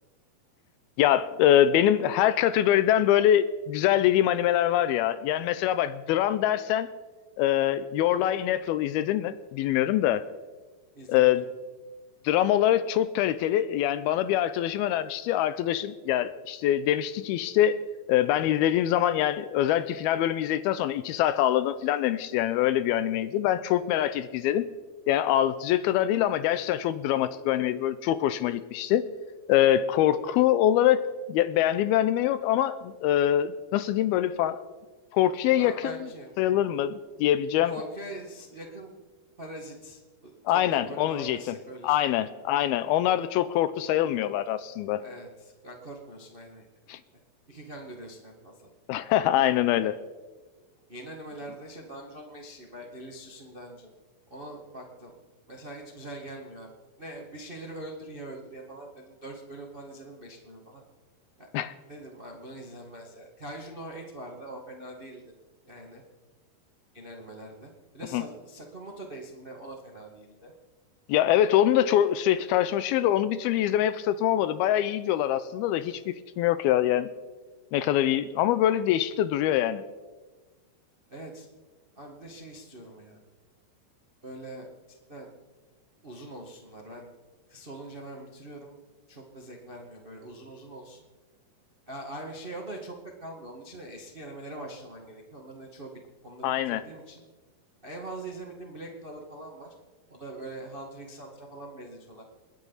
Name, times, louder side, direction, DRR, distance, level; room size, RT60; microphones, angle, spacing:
voice 1, 1.0-6.9 7.4-10.2 11.1-11.5 12.2-17.8 18.1-24.7 25.1-29.1 29.5-34.6 35.1-36.0 36.4-37.7 40.5-41.6 41.8-45.0 46.9-47.0 48.9-49.9 61.5-61.7 68.1-68.2 71.1-77.1 77.7-79.8 96.4-96.8, left 12 dB, 80° left, 14 dB, 2.4 m, -24 dB
voice 2, 10.9-11.4 35.6-36.3 37.6-38.9 39.4-42.3 45.0-46.6 47.5-48.7 49.4-49.5 50.9-53.9 54.3-55.2 55.5-56.7 57.0-60.8 61.4-61.5 61.9-65.2 65.7-66.0 66.9-70.5 81.1-81.5 81.9-83.2 84.2-84.7 85.1-85.3 86.0-87.1 87.5-88.7 89.1-91.0 91.9-97.2 97.8-99.7 100.1-102.2, right 1 dB, 50° right, 0 dB, 0.6 m, -43 dB
30.0 x 10.5 x 4.1 m, 1.3 s
omnidirectional pair, 4.6 m